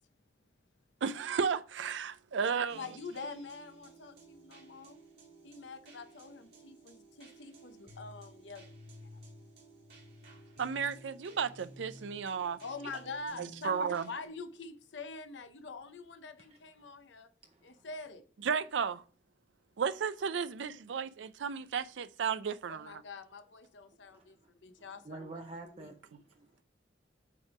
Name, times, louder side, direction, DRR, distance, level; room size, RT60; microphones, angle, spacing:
voice 1, 1.0-2.8 10.6-12.6 13.4-14.1 18.4-19.0 19.8-23.0, right 6 dB, 85° right, 0.4 m, -33 dB
voice 2, 2.7-5.0 5.4-8.7 9.0-9.2 12.6-17.3 17.6-18.3 22.7-25.3 25.6-25.9, left 3 dB, 80° left, 0.7 m, -45 dB
sound 1, 2.7-14.3, right 1 dB, 60° right, 2.0 m, -54 dB
voice 3, 17.4-17.9 24.1-24.5 24.8-26.6, right 2 dB, 35° right, 0.6 m, -49 dB
8.3 x 3.5 x 4.8 m
head